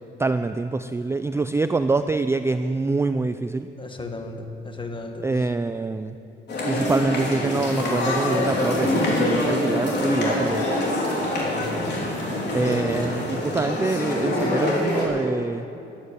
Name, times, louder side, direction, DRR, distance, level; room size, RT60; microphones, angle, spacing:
voice 1, 0.0-3.7 5.2-6.2 6.7-10.7 12.5-15.7, right 3 dB, 15° right, 10 dB, 0.3 m, -25 dB
voice 2, 3.8-5.2 11.4-11.9 12.6-13.0, left 3 dB, 25° left, 4 dB, 1.7 m, -34 dB
sound 1, 6.5-15.0, left 1 dB, 60° left, 4.1 m, -25 dB
12.0 x 10.0 x 8.1 m, 2.8 s
cardioid pair, 90°, 20 cm